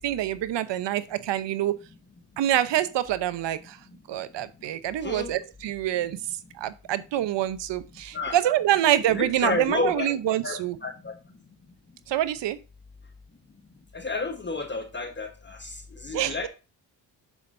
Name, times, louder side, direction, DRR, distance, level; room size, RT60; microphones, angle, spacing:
voice 1, 0.0-1.7 2.4-3.8 4.1-6.2 6.6-10.8 12.1-12.6 16.1-16.4, right 12 dB, 70° right, 15 dB, 0.8 m, -26 dB
voice 2, 9.1-10.1 10.4-11.1 13.9-15.7 16.0-16.5, left 3 dB, 25° left, 5 dB, 1.2 m, -30 dB
7.2 x 7.2 x 2.6 m, 0.30 s
cardioid pair, 80°, 44 cm